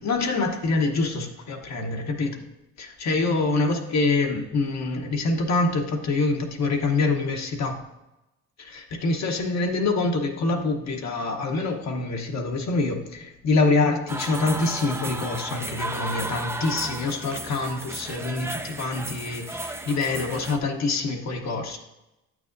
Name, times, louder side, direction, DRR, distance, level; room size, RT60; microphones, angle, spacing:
voice 1, 0.0-2.4 2.8-7.8 8.6-21.8, left 3 dB, 50° left, 3 dB, 1.0 m, -25 dB
sound 1, 14.1-20.6, right 2 dB, 10° right, 0.5 m, -34 dB
8.4 x 6.2 x 2.6 m, 0.95 s
supercardioid pair, 75°, 34 cm